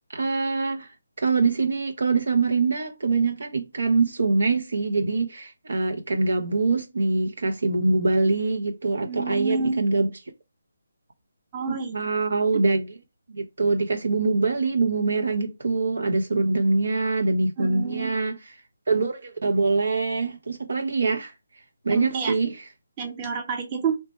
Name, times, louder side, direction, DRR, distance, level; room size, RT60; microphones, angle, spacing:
voice 1, 0.1-0.9 1.2-10.1 11.7-12.9 13.3-18.4 18.9-21.3 21.8-22.6, right 3 dB, 65° right, 0.7 m, -24 dB
voice 2, 9.1-9.8 11.5-11.9 17.6-18.1 21.9-22.3 23.0-24.0, right 5 dB, 25° right, 0.9 m, -28 dB
3.2 x 2.1 x 4.1 m
figure-of-eight pair, 150°, 0 cm